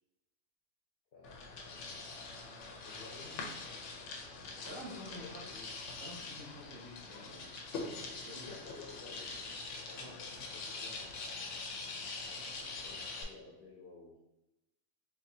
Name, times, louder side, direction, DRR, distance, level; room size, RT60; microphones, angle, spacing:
voice 1, 1.1-1.9 2.8-4.3 4.8-5.7 8.2-11.4 12.3-14.2, left 3 dB, 55° left, -3 dB, 0.7 m, -55 dB
sound 1, 1.2-13.2, left 3 dB, 90° left, 0.9 m, -44 dB
voice 2, 4.6-5.4 6.0-7.5 8.2-8.6 9.9-10.2, equal, 45° right, -9 dB, 1.7 m, -48 dB
4.1 x 2.2 x 2.6 m, 0.91 s
omnidirectional pair, 1.2 m